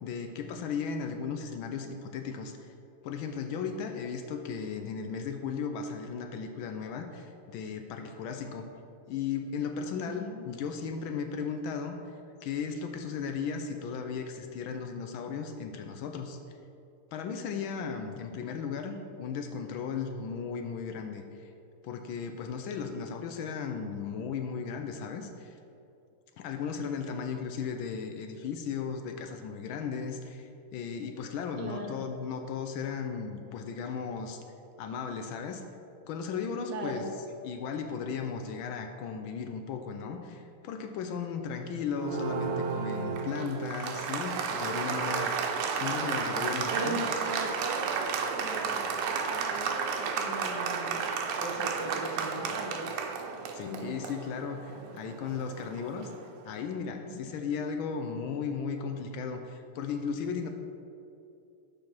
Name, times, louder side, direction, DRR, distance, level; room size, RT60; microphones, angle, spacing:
voice 1, 0.0-2.7 3.0-8.6 9.1-12.0 12.4-16.4 17.1-21.5 21.8-25.6 26.4-34.4 34.8-35.6 36.1-37.0 37.4-47.0 53.5-56.1 56.4-60.5, left 6 dB, 75° left, 6 dB, 1.3 m, -36 dB
voice 2, 10.0-10.4 31.6-32.0 36.7-37.1 46.7-51.0 51.4-53.0 57.1-57.4, right 2 dB, 65° right, 1 dB, 1.2 m, -38 dB
Applause, 42.0-56.3, right 5 dB, 90° right, 1.7 m, -33 dB
6.9 x 5.3 x 5.9 m, 2.6 s
omnidirectional pair, 2.4 m